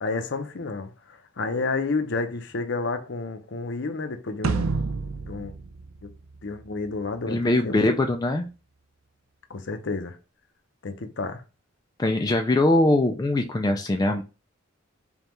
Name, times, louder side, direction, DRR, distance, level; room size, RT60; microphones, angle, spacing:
voice 1, 0.0-4.8 5.2-5.5 6.0-6.1 6.4-7.9 9.5-10.2 10.8-11.4, left 3 dB, 60° left, 0.6 m, -30 dB
sound 1, 4.4-6.9, right 4 dB, 80° right, 0.5 m, -29 dB
voice 2, 7.3-8.5 12.0-14.2, left 2 dB, 20° left, 0.3 m, -22 dB
5.2 x 2.3 x 3.0 m
head